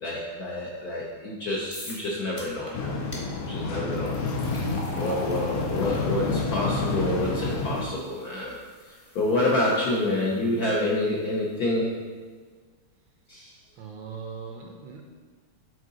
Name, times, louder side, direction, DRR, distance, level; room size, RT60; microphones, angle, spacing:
voice 1, 0.0-2.9 3.5-4.2 4.9-8.6 9.1-11.9 13.3-13.5, left 1 dB, 65° left, -4 dB, 0.9 m, -27 dB
sound 1, 1.7-2.1 2.4-2.7 3.1-3.2 3.9-11.1, equal, 40° left, 0.4 m, -44 dB
sound 2, 2.7-7.8, left 3 dB, 85° left, 1.7 m, -29 dB
voice 2, 4.8-5.2 13.8-15.0, right 5 dB, 75° right, 2 dB, 1.2 m, -40 dB
6.5 x 3.9 x 3.8 m, 1.5 s
omnidirectional pair, 2.4 m